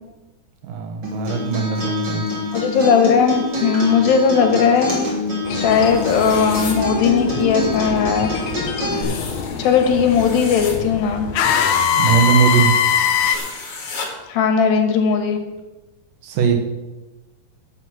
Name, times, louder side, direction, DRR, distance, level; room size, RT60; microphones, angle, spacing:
voice 1, 0.6-2.2 12.0-12.7 16.2-16.5, right 6 dB, 70° right, 4 dB, 2.6 m, -19 dB
Acoustic guitar, 1.0-9.0, left 1 dB, 30° right, 3.3 m, -26 dB
voice 2, 2.5-5.0 5.5-8.3 9.6-11.3 14.3-15.4, left 6 dB, 75° left, 6 dB, 2.9 m, -17 dB
sound 1, 5.4-13.4, left 7 dB, 90° left, 1.6 m, -23 dB
sound 2, 5.7-6.8 8.9-10.8 13.2-14.1, left 4 dB, 45° left, 2.4 m, -33 dB
12.0 x 6.2 x 7.7 m, 1.1 s
omnidirectional pair, 4.5 m